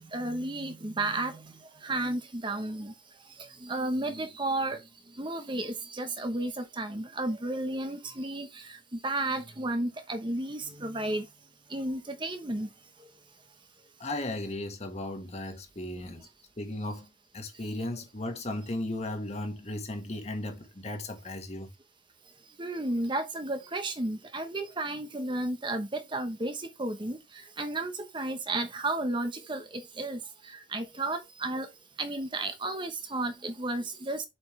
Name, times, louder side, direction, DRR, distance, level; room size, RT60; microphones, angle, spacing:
voice 1, 0.1-1.4 1.8-2.9 3.6-4.8 5.2-11.2 11.7-12.7 22.6-27.2 27.6-30.2 30.7-31.7 32.0-34.2, right 2 dB, 25° right, 0.9 m, -32 dB
voice 2, 14.0-16.3 16.6-21.7, left 1 dB, 35° left, 1.5 m, -36 dB
7.7 x 5.3 x 3.2 m
head